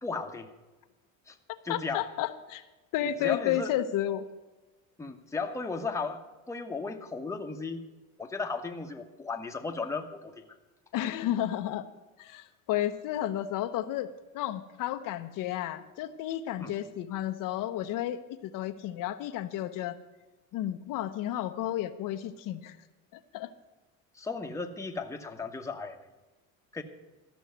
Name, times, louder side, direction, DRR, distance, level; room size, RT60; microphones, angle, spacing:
voice 1, 0.0-0.5 1.3-1.4 1.6-2.0 3.2-3.7 5.0-7.8 8.2-10.6 16.6-16.7 24.1-26.0 26.7-26.8, left 4 dB, 10° left, 3 dB, 1.0 m, -35 dB
voice 2, 1.5-2.6 2.9-4.3 10.9-11.9 12.2-20.0 20.5-22.8 23.1-23.5, left 12 dB, 60° left, 8 dB, 0.9 m, -32 dB
13.5 x 6.3 x 9.2 m, 1.1 s
cardioid pair, 125°, 36 cm